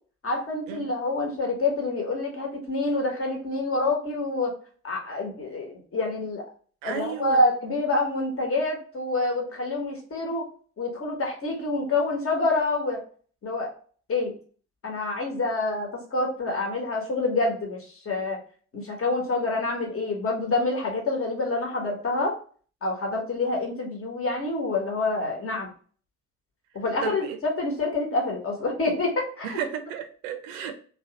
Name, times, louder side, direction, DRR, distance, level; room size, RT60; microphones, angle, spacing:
voice 1, 0.2-4.5 4.8-6.5 6.8-10.5 10.8-13.0 13.4-13.7 14.1-14.3 14.8-18.4 18.7-22.3 22.8-25.7 26.7-29.6, left 2 dB, 35° left, 1.2 m, -27 dB
voice 2, 6.8-7.4 27.0-27.4 29.4-30.7, right 8 dB, 70° right, 0.6 m, -33 dB
3.2 x 2.3 x 2.8 m
figure-of-eight pair, 45°, 39 cm